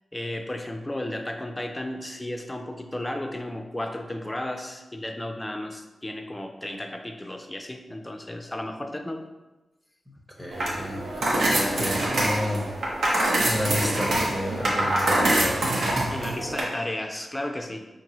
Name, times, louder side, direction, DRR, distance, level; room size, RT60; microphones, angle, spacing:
voice 1, 0.1-9.3 16.1-17.9, left 1 dB, 15° left, 5 dB, 0.4 m, -33 dB
voice 2, 10.1-12.7 13.1-16.2, equal, 10° right, -2 dB, 0.7 m, -32 dB
sound 1, 10.5-16.6, right 1 dB, 85° right, 0.9 m, -25 dB
5.3 x 2.6 x 2.9 m, 1.0 s
wide cardioid pair, 125°, 0 cm